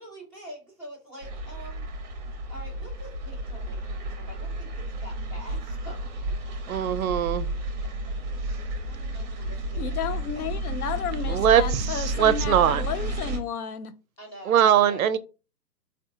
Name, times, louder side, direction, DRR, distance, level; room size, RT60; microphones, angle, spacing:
voice 1, 0.0-1.9 2.5-6.1 8.8-9.9 10.4-10.5 14.2-15.0, equal, 10° left, 0.6 m, -45 dB
sound 1, 1.2-13.4, right 1 dB, 25° right, 0.7 m, -32 dB
voice 2, 6.7-7.5 11.3-12.8 14.5-15.2, right 9 dB, 60° right, 0.5 m, -21 dB
voice 3, 9.7-13.9, left 7 dB, 65° left, 0.6 m, -32 dB
3.5 x 2.4 x 2.5 m
hypercardioid pair, 145°, 49 cm